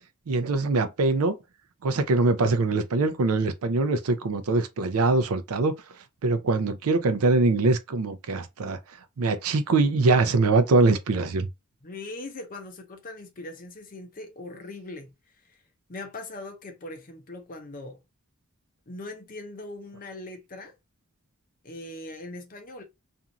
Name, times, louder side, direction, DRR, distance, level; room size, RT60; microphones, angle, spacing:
voice 1, 0.3-1.4 1.8-5.8 6.2-8.8 9.2-11.5, right 3 dB, 70° right, 0.5 m, -23 dB
voice 2, 11.8-15.1 15.4-15.6 15.9-18.0 18.9-20.7 21.6-22.8, left 2 dB, 40° left, 0.6 m, -40 dB
2.6 x 2.4 x 2.8 m
head